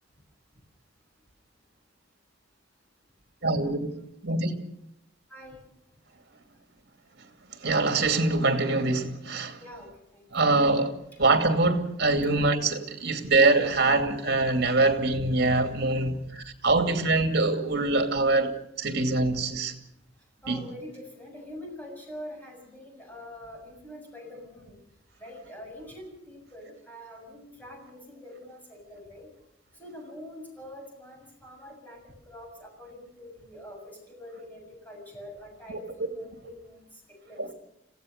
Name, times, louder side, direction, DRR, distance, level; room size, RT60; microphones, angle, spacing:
voice 1, 3.4-3.9 4.2-4.6 7.6-9.6 10.3-10.9 11.2-19.7 20.5-20.6 35.7-35.8 37.4-37.5, right 2 dB, 60° right, 2.5 m, -24 dB
voice 2, 20.4-24.7 25.2-29.3 29.8-36.9 37.2-37.4, left 1 dB, 10° left, 7.3 m, -44 dB
26.5 x 16.5 x 6.6 m
head